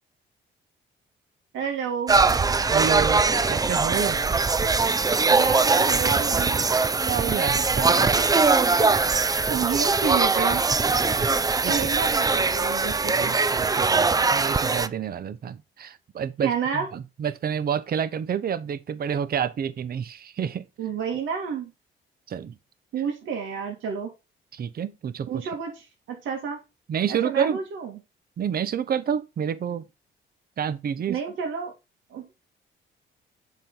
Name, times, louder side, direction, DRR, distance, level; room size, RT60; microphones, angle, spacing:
voice 1, 1.5-2.2 5.3-6.7 7.8-8.9 9.1-10.6 11.7-13.3 16.4-16.9 20.8-21.7 22.9-24.1 25.3-26.6 27.1-28.0 31.1-31.7 32.1-32.3, right 6 dB, 80° right, 2.2 m, -30 dB
sound 1, 2.1-14.9, right 4 dB, 20° right, 0.5 m, -21 dB
voice 2, 2.7-3.2 3.5-4.2 7.1-7.6 11.2-12.0 13.1-20.7 22.3-22.5 24.5-25.3 26.9-27.6 28.4-29.8 30.6-31.2, right 8 dB, 50° right, 0.8 m, -29 dB
7.4 x 3.8 x 5.6 m
cardioid pair, 90°, 20 cm